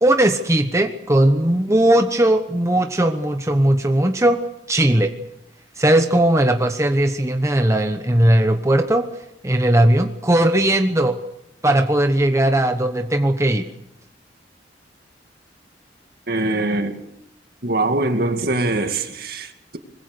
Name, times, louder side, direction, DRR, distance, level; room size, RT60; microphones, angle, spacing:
voice 1, 0.0-4.4 4.7-5.1 5.8-9.0 9.4-11.2 11.6-13.7, right 1 dB, 15° right, 1.0 m, -18 dB
voice 2, 16.3-17.0 17.6-19.8, right 2 dB, 55° right, 2.3 m, -23 dB
23.5 x 21.5 x 6.8 m
head